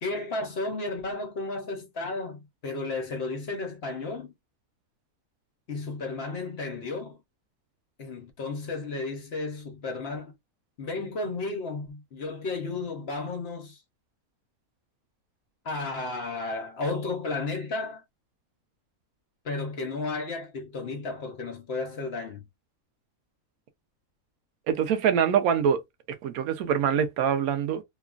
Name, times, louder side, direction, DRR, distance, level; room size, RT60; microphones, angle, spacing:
voice 1, 0.0-4.3 5.7-7.2 8.0-10.3 10.8-13.8 15.6-18.0 19.4-22.4, left 3 dB, 55° left, 0.8 m, -33 dB
voice 2, 24.7-25.8 26.2-27.8, right 8 dB, 85° right, 1.1 m, -24 dB
2.9 x 2.3 x 2.3 m
omnidirectional pair, 1.5 m